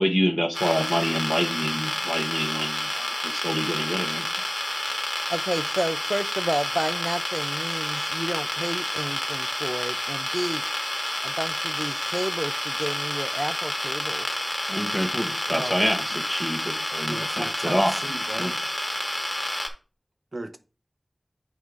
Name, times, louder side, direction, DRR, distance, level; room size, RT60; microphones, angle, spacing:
voice 1, 0.0-4.3 14.7-17.9 18.4-18.5, equal, 5° right, 0.9 m, -27 dB
sound 1, 0.5-19.7, left 1 dB, 25° left, 1.4 m, -29 dB
voice 2, 5.3-10.6 11.2-14.3 15.5-15.8, right 1 dB, 25° right, 0.4 m, -31 dB
voice 3, 17.1-18.5 20.3-20.6, right 2 dB, 90° right, 0.7 m, -35 dB
9.2 x 5.5 x 2.4 m
wide cardioid pair, 50°, 0 cm